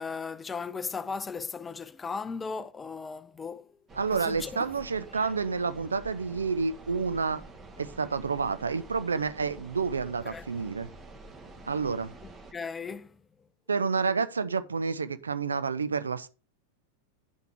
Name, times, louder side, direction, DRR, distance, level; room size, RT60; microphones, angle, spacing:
voice 1, 0.0-3.7 4.2-4.7 5.1-5.3 10.3-10.4 12.2-13.2, left 5 dB, 15° left, 0.5 m, -37 dB
wind at night, 3.9-12.5, right 2 dB, 20° right, 1.3 m, -48 dB
voice 2, 4.0-7.4 7.8-10.9 11.6-12.1 13.7-16.3, right 5 dB, 75° right, 0.5 m, -29 dB
9.8 x 5.7 x 3.5 m
figure-of-eight pair, 90°, 0 cm